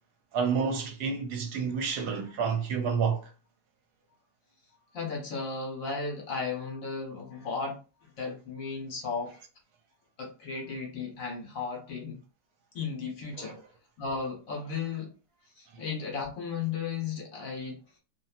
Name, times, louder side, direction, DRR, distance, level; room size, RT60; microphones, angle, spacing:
voice 1, 0.3-3.2 13.3-13.5, right 6 dB, 75° right, 1.2 m, -29 dB
voice 2, 4.9-9.4 10.2-12.2 12.7-13.5 14.0-15.1 15.5-17.8, left 5 dB, 55° left, 1.3 m, -35 dB
2.8 x 2.6 x 2.4 m
omnidirectional pair, 1.8 m